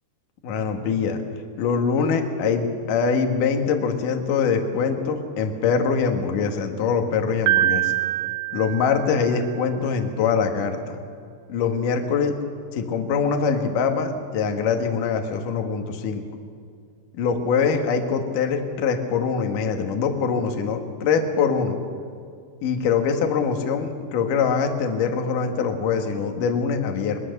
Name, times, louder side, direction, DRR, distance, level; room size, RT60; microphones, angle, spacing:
voice 1, 0.4-1.2 1.6-7.9 8.5-11.0 11.5-12.3 12.7-16.2 17.1-21.8 22.6-27.2, left 5 dB, 55° left, 4 dB, 2.9 m, -23 dB
Piano, 7.5-9.6, right 15 dB, 85° right, 2.9 m, -24 dB
22.5 x 22.5 x 6.7 m, 2.2 s
omnidirectional pair, 5.0 m